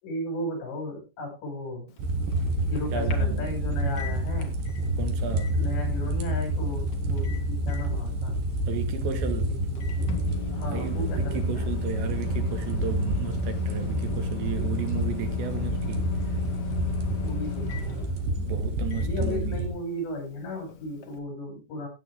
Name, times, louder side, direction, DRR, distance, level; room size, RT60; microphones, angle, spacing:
voice 1, 0.0-1.9 2.6-4.5 5.5-8.4 9.7-10.2 10.5-11.7 15.4-15.7 17.2-18.3 19.0-21.9, left 1 dB, 80° left, 7.8 m, -35 dB
Microwave oven, 1.9-21.2, left 13 dB, 50° left, 1.8 m, -40 dB
sound 1, 2.0-19.7, right 1 dB, 65° right, 3.1 m, -28 dB
voice 2, 2.9-3.5 5.0-5.6 8.7-9.6 10.5-16.1 18.3-19.6, right 8 dB, 85° right, 4.1 m, -34 dB
16.0 x 8.8 x 3.5 m
omnidirectional pair, 5.0 m